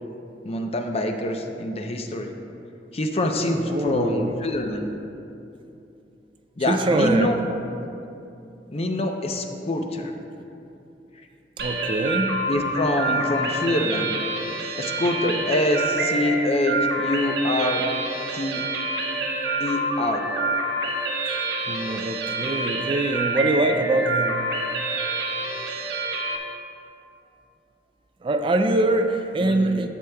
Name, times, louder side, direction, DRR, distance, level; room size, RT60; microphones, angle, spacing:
voice 1, 0.4-2.3 2.9-4.9 6.6-7.4 8.7-10.1 12.5-14.2 14.7-17.8 18.3-18.6 19.6-20.2 29.4-29.9, left 1 dB, 35° left, 4 dB, 0.6 m, -25 dB
voice 2, 3.5-4.3 6.7-7.4 11.6-12.4 21.2-21.4 21.7-24.5 28.2-29.9, right 2 dB, 30° right, 6 dB, 0.4 m, -24 dB
sound 1, 11.6-26.4, right 2 dB, 65° right, 0.8 m, -27 dB
12.0 x 7.7 x 2.2 m, 2.7 s
head